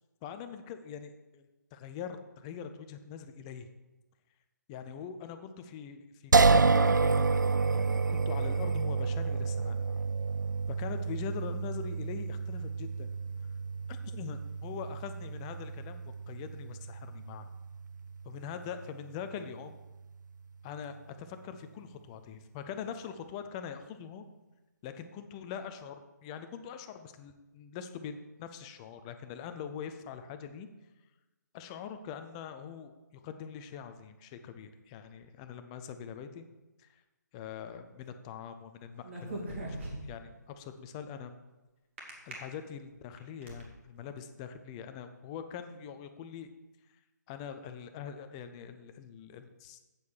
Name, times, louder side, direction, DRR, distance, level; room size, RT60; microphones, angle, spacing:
voice 1, 0.2-3.7 4.7-7.2 7.7-9.8 10.7-13.1 13.9-17.5 18.2-19.8 20.6-24.2 24.8-30.7 31.5-36.4 36.8-37.0 37.3-41.3 42.3-46.5 47.3-49.8, left 7 dB, 20° left, 8 dB, 0.5 m, -43 dB
sound 1, 6.3-19.4, right 4 dB, 70° right, 0.4 m, -30 dB
sound 2, 39.0-40.3 42.0-42.3 42.9-43.6, right 1 dB, 40° right, 2.5 m, -39 dB
8.1 x 7.1 x 6.2 m, 1.1 s
figure-of-eight pair, 140°, 10 cm